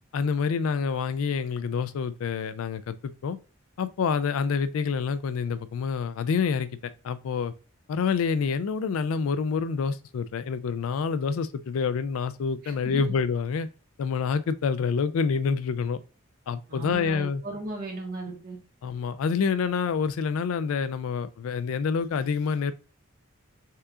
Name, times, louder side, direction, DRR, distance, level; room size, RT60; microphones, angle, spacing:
voice 1, 0.1-3.4 3.8-6.7 7.0-7.5 7.9-13.7 14.0-16.0 16.5-17.4 18.8-22.7, left 5 dB, 75° left, 0.3 m, -27 dB
voice 2, 12.6-13.2 16.7-18.6, right 2 dB, 45° right, 1.5 m, -36 dB
5.5 x 3.6 x 2.4 m
head